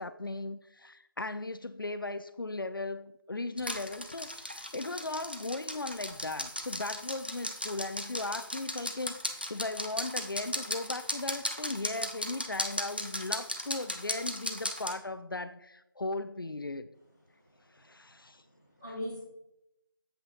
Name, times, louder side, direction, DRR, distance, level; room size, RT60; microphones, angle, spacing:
voice 1, 0.0-16.9 17.7-18.4, left 2 dB, 70° left, 11 dB, 0.5 m, -37 dB
sound 1, 3.6-14.9, left 1 dB, 25° right, 0.5 m, -37 dB
voice 2, 17.3-18.0 18.5-19.2, equal, 5° right, -11 dB, 1.1 m, -42 dB
7.5 x 5.6 x 4.0 m, 0.85 s
figure-of-eight pair, 180°, 12 cm